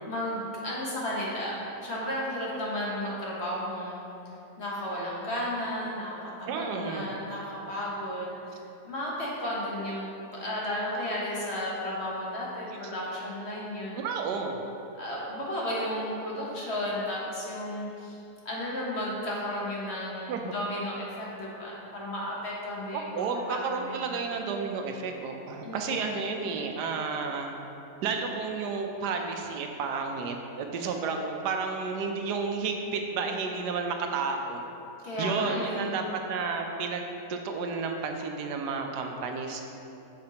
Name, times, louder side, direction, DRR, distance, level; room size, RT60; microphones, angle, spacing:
voice 1, 0.1-4.0 4.2-14.0 15.0-24.3 25.6-26.3 35.0-36.0, left 1 dB, 45° left, -5 dB, 1.3 m, -34 dB
voice 2, 6.5-7.1 13.9-14.6 20.3-20.4 22.9-27.5 28.0-34.6 35.2-37.0 37.3-39.6, right 4 dB, 85° right, 3 dB, 1.2 m, -31 dB
7.4 x 6.7 x 2.9 m, 2.9 s
omnidirectional pair, 1.7 m